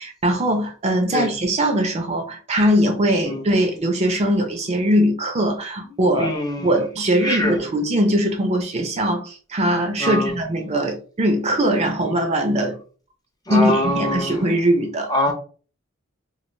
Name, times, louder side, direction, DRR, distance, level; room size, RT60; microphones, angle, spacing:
voice 1, 0.0-6.3 6.6-12.8 13.5-15.1, right 1 dB, 30° right, 0.5 m, -21 dB
voice 2, 6.1-6.7 7.2-7.6 10.0-10.3 13.5-14.4 15.1-15.3, left 1 dB, 20° left, 0.6 m, -23 dB
3.1 x 2.5 x 2.6 m
head